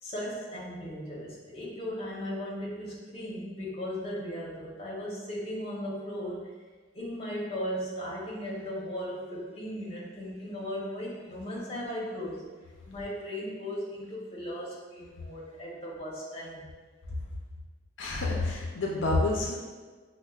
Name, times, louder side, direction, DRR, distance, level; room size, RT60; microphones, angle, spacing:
voice 1, 0.0-6.5 6.9-12.4 12.8-16.7, equal, 30° left, -5 dB, 0.7 m, -37 dB
voice 2, 18.0-19.5, left 2 dB, 70° left, -2 dB, 0.4 m, -28 dB
5.3 x 2.1 x 2.3 m, 1.4 s
head